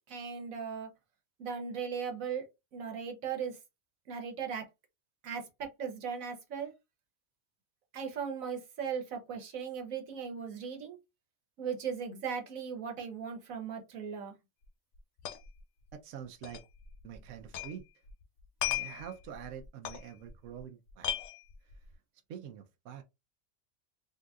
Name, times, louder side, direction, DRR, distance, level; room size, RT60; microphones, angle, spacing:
voice 1, 0.1-0.9 1.4-3.6 4.1-4.7 5.2-6.7 7.9-11.0 11.6-14.3, right 6 dB, 90° right, 1.3 m, -38 dB
sound 1, 14.6-14.7 15.0-15.6 15.9-16.0 16.4-17.8 18.1-20.6 20.9-21.9, left 10 dB, 70° left, 0.9 m, -37 dB
voice 2, 15.9-16.6 17.0-17.8 18.6-21.2 22.3-23.0, right 9 dB, 75° right, 0.9 m, -46 dB
3.8 x 2.7 x 2.4 m
omnidirectional pair, 1.4 m